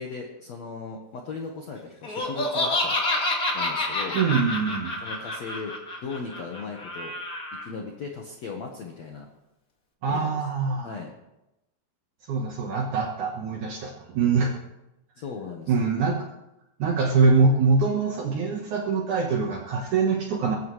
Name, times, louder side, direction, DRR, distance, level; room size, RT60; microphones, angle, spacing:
voice 1, 0.0-3.0 3.5-4.2 5.0-5.7 6.0-7.1 7.5-9.3 10.1-10.4 10.8-11.1 15.2-15.9, left 4 dB, 70° left, 1 dB, 1.6 m, -37 dB
Laughter, 2.0-7.6, left 2 dB, 40° left, 1.3 m, -28 dB
voice 2, 4.1-4.9 10.0-10.9 12.3-14.5 15.7-16.2 16.8-20.6, right 4 dB, 65° right, 0 dB, 2.1 m, -23 dB
20.5 x 15.5 x 3.3 m, 0.92 s
omnidirectional pair, 5.1 m